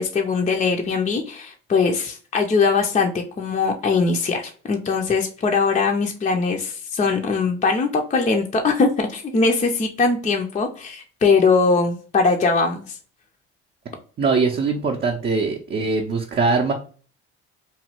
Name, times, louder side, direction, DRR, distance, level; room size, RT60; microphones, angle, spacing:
voice 1, 0.0-3.1 3.4-13.0, left 4 dB, 25° left, 2 dB, 0.5 m, -21 dB
voice 2, 14.2-16.7, right 4 dB, 35° right, 0 dB, 0.6 m, -21 dB
3.0 x 2.2 x 2.9 m, 0.40 s
supercardioid pair, 80°, 30 cm